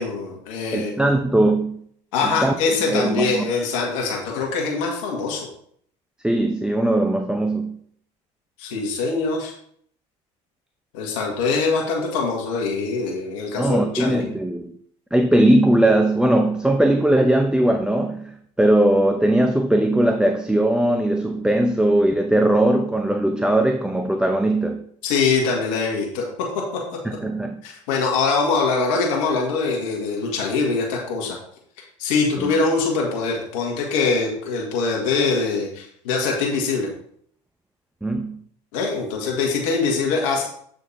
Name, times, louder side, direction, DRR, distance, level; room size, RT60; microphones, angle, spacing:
voice 1, 0.0-0.9 2.1-5.5 8.6-9.5 10.9-14.3 25.0-26.3 26.5-26.8 27.6-31.4 32.0-36.9 38.7-40.4, left 4 dB, 85° left, -1 dB, 1.7 m, -23 dB
voice 2, 0.7-1.8 2.2-2.5 2.9-3.5 6.2-7.8 13.6-14.7 15.1-24.8 27.0-27.6 32.4-32.5 38.0-38.4, right 1 dB, 5° right, 4 dB, 0.7 m, -19 dB
8.5 x 4.3 x 4.2 m, 0.63 s
supercardioid pair, 80°, 16 cm